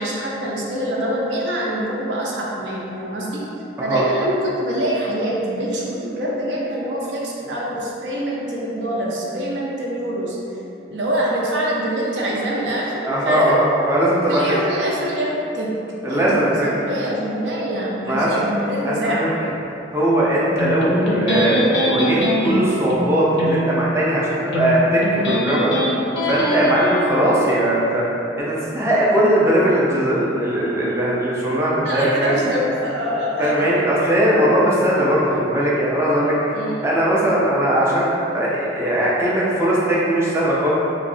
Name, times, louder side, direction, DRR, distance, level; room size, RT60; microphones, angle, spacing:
voice 1, 0.0-3.4 3.8-10.4 10.9-13.6 14.3-15.7 16.1-19.3 31.8-33.8 36.5-36.9, right 1 dB, 70° right, -4 dB, 0.5 m, -25 dB
voice 2, 13.0-14.5 16.0-16.7 18.0-18.4 18.8-19.3 19.9-25.7 26.2-28.0 28.4-32.4 33.4-36.4 36.8-40.7, right 1 dB, 15° right, -6 dB, 0.4 m, -19 dB
Electric guitar, 20.6-27.6, equal, 60° left, 0.4 m, -23 dB
3.5 x 2.0 x 2.5 m, 2.8 s
head